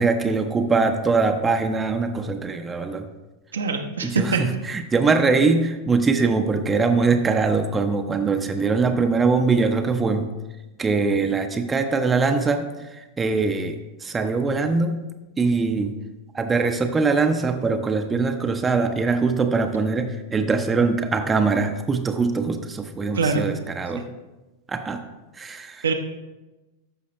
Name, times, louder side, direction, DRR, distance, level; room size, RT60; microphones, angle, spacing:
voice 1, 0.0-3.1 4.0-10.3 10.8-15.0 15.4-16.0 16.3-24.1 24.7-25.0 25.4-25.9, right 4 dB, 15° right, 6 dB, 0.6 m, -22 dB
voice 2, 3.5-4.4 23.1-23.5 23.9-24.0 25.8-25.9, right 4 dB, 70° right, 5 dB, 0.7 m, -23 dB
13.5 x 5.7 x 3.0 m, 1.1 s
figure-of-eight pair, 90°, 0 cm